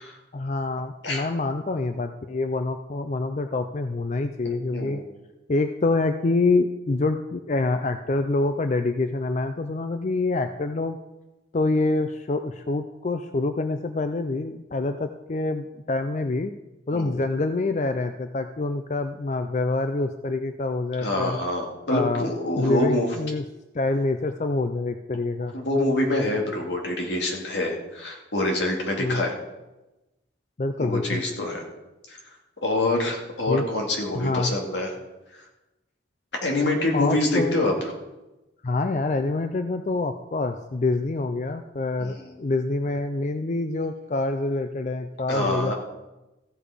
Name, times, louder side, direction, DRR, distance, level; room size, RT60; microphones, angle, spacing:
voice 1, 0.3-5.0 5.5-11.0 11.5-16.5 16.9-21.4 21.9-22.3 22.6-23.4 23.7-25.5 29.0-29.2 30.6-31.2 33.5-33.6 34.1-34.5 36.9-37.6 38.6-45.7, left 3 dB, 40° left, 8 dB, 0.5 m, -26 dB
voice 2, 4.7-5.0 16.9-17.1 21.0-23.1 25.5-29.4 30.8-31.6 32.1-32.2 32.6-34.9 36.4-37.7 42.0-42.4 45.3-45.7, left 1 dB, 75° left, 0 dB, 2.4 m, -26 dB
15.0 x 6.9 x 5.0 m, 1.0 s
head